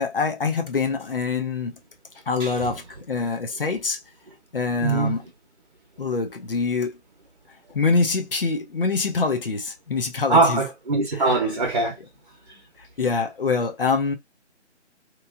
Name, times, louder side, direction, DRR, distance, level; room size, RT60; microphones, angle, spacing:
voice 1, 0.0-1.7 2.3-4.0 4.5-5.2 6.0-7.0 7.7-10.6 11.2-11.4 13.0-14.1, left 4 dB, 50° left, 0.7 m, -25 dB
voice 2, 2.4-2.7 4.8-5.2 10.3-12.0, right 3 dB, 40° right, 0.9 m, -22 dB
3.0 x 2.6 x 2.3 m
figure-of-eight pair, 155°, 36 cm